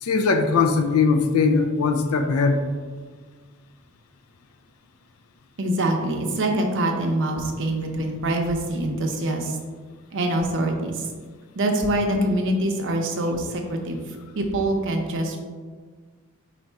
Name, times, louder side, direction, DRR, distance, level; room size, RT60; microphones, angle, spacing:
voice 1, 0.0-2.6, left 4 dB, 80° left, 6 dB, 0.4 m, -20 dB
voice 2, 5.6-9.6 10.1-11.1 11.6-14.0 14.3-15.4, right 1 dB, 60° right, 3 dB, 0.6 m, -24 dB
4.2 x 2.6 x 4.5 m, 1.5 s
head